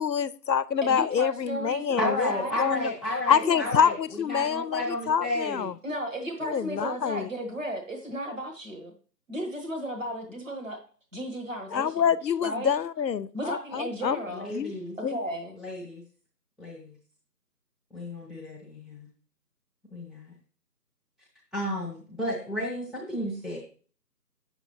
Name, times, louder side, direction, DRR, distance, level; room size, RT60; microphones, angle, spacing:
voice 1, 0.0-2.3 2.6-2.9 3.3-5.7 6.4-7.3 11.7-14.2 14.5-14.7 15.0-15.2, left 7 dB, 80° left, 0.6 m, -26 dB
voice 2, 0.8-2.6 3.3-3.7 5.8-8.9 9.3-10.8 11.1-12.1 12.4-12.7 13.3-14.5 15.0-15.5, equal, 50° right, 1.4 m, -34 dB
voice 3, 2.0-4.0 4.3-5.7 14.3-15.0 15.6-16.0 16.6-16.9 17.9-19.1 19.9-20.3 21.5-23.6, left 1 dB, ahead, 0.8 m, -32 dB
8.2 x 6.9 x 3.0 m
figure-of-eight pair, 180°, 50 cm